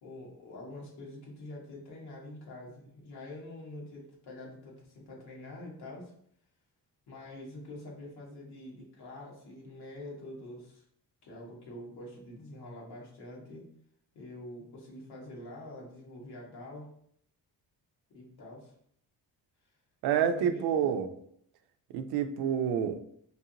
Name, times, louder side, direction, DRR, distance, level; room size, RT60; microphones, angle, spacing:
voice 1, 0.0-6.1 7.1-10.8 11.2-13.7 14.1-16.9 18.1-18.7 20.2-20.9, left 1 dB, 85° left, -3 dB, 1.4 m, -46 dB
voice 2, 20.0-21.1 21.9-23.0, right 8 dB, 85° right, 8 dB, 0.5 m, -28 dB
4.5 x 2.5 x 2.8 m, 0.68 s
cardioid pair, 85°, 37 cm